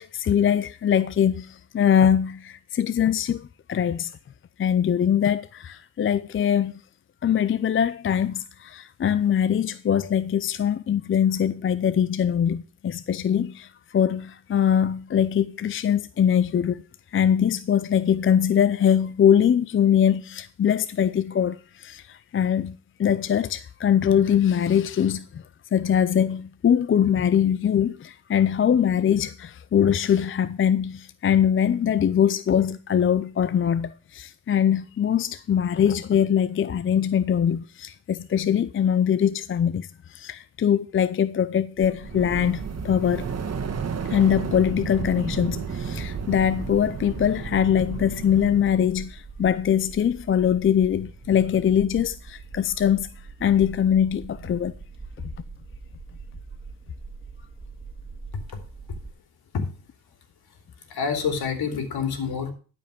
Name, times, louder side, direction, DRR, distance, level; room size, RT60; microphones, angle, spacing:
voice 1, 0.0-4.1 4.6-6.8 7.2-16.8 17.1-25.4 25.7-43.3 44.1-53.1 53.4-54.7, left 9 dB, 30° left, 0.5 m, -22 dB
sound 1, 41.8-59.1, right 4 dB, 15° right, 3.2 m, -43 dB
sound 2, 42.0-49.0, right 5 dB, 35° right, 1.7 m, -32 dB
voice 2, 60.8-62.5, left 6 dB, 60° left, 3.2 m, -28 dB
12.0 x 5.3 x 7.0 m
supercardioid pair, 70°, 41 cm